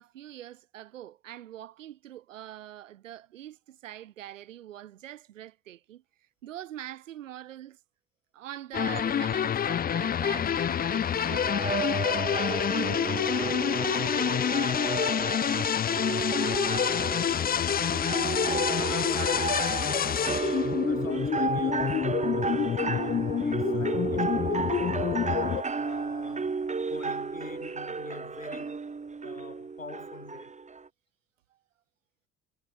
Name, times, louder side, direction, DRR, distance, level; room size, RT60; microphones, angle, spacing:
voice 1, 0.0-6.0 6.4-7.8 8.3-14.4, right 12 dB, 75° right, 3.1 m, -44 dB
sound 1, 8.7-25.6, left 9 dB, 25° left, 0.6 m, -28 dB
sound 2, 11.3-30.9, right 4 dB, 20° right, 1.3 m, -32 dB
voice 2, 18.3-20.5 20.8-25.3 25.7-26.6 26.9-28.9 29.2-30.6, left 4 dB, 85° left, 5.1 m, -45 dB
figure-of-eight pair, 50°, 38 cm